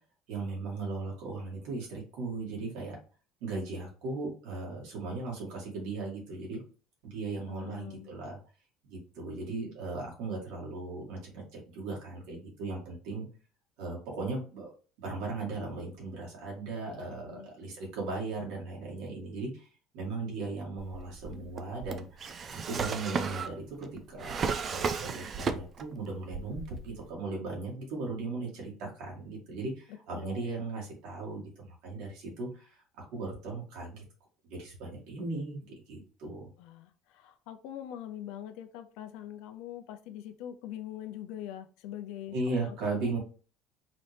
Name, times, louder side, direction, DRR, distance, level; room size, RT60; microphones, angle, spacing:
voice 1, 0.3-3.0 3.4-6.6 7.0-8.4 8.8-13.3 13.8-14.7 15.0-19.7 19.9-22.2 22.5-34.0 34.5-35.6 35.9-36.5 42.3-43.2, right 3 dB, 75° right, -2 dB, 2.2 m, -37 dB
voice 2, 7.5-8.1 17.3-17.5 30.1-30.4 36.6-42.8, left 11 dB, 80° left, 8 dB, 0.5 m, -43 dB
Drawer open or close, 20.8-26.0 26.3-27.1, right 5 dB, 35° right, 0.4 m, -35 dB
4.0 x 2.8 x 3.4 m, 0.39 s
cardioid pair, 125°, 0 cm